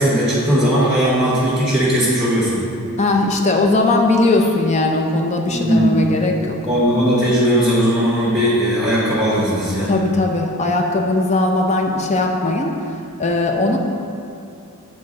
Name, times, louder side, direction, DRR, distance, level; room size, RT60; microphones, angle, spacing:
voice 1, 0.0-2.6 5.4-6.0 6.7-9.9, equal, 5° right, -11 dB, 1.4 m, -17 dB
voice 2, 3.0-6.6 9.8-12.7 13.2-13.8, left 2 dB, 30° left, 2 dB, 0.5 m, -18 dB
9.3 x 3.8 x 3.8 m, 2.6 s
head